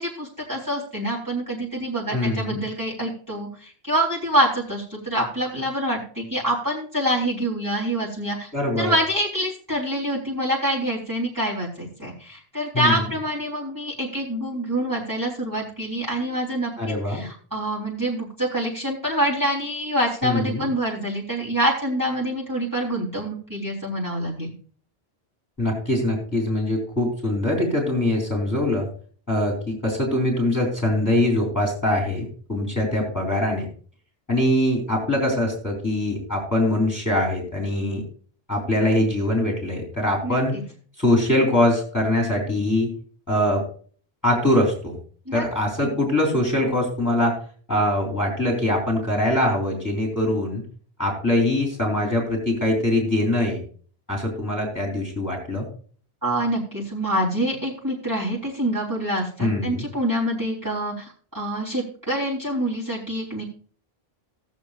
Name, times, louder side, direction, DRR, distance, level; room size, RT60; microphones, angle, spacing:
voice 1, 0.0-8.5 8.8-16.7 17.1-24.5 40.2-40.6 45.3-45.4 45.8-45.9 56.2-63.4, right 1 dB, 20° right, -4 dB, 3.5 m, -26 dB
voice 2, 2.1-2.6 8.5-8.9 12.7-13.0 16.8-17.2 20.2-20.7 25.6-28.9 29.3-33.7 34.3-38.0 38.5-40.6 41.0-42.9 43.3-43.6 44.2-45.0 45.3-47.4 47.7-50.6 51.0-53.6 54.1-55.7 59.4-59.9, left 1 dB, 15° left, -2 dB, 3.4 m, -23 dB
18.5 x 7.3 x 2.4 m, 0.43 s
omnidirectional pair, 1.0 m